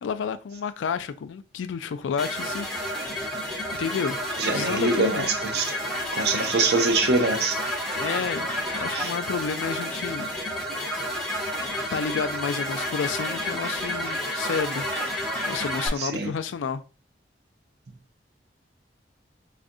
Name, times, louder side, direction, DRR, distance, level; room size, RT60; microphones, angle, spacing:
voice 1, 0.0-3.2 3.7-4.2 4.5-5.3 7.9-10.3 11.9-14.9 15.4-16.8, left 6 dB, 90° left, 0.3 m, -30 dB
sound 1, 2.2-15.9, equal, ahead, 0.8 m, -30 dB
voice 2, 4.4-5.7 6.1-7.6 8.9-9.1 16.0-16.3, right 3 dB, 60° right, 0.6 m, -24 dB
4.7 x 2.5 x 2.6 m
head